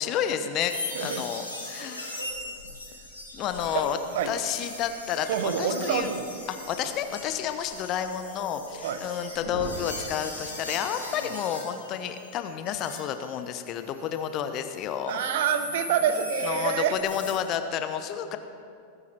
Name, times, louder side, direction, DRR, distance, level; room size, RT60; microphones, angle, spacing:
voice 1, 0.0-2.1 3.3-4.0 4.3-6.1 6.5-15.2 16.4-18.4, left 9 dB, 35° left, 9 dB, 0.8 m, -30 dB
sound 1, 0.6-13.0 13.3-17.3, left 1 dB, 85° left, 4.3 m, -39 dB
voice 2, 5.3-6.3 8.8-9.0 15.1-17.0, right 8 dB, 55° right, 10 dB, 0.9 m, -27 dB
21.5 x 9.9 x 4.5 m, 2.5 s
figure-of-eight pair, 90°, 0 cm